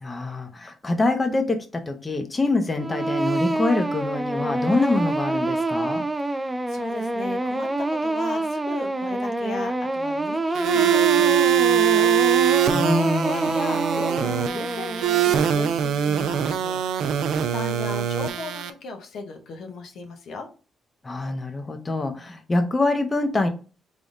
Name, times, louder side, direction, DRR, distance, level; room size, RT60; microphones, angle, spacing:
voice 1, 0.0-6.1 12.7-13.5 21.0-23.5, left 2 dB, 25° left, 6 dB, 0.7 m, -25 dB
sound 1, 2.7-15.6, right 2 dB, 15° right, 0.4 m, -27 dB
voice 2, 6.2-12.1 13.0-17.3 17.5-20.5, left 3 dB, 70° left, 5 dB, 0.8 m, -37 dB
sound 2, 10.5-18.7, right 8 dB, 80° right, 0.4 m, -22 dB
3.9 x 3.4 x 2.4 m, 0.35 s
cardioid pair, 90°, 0 cm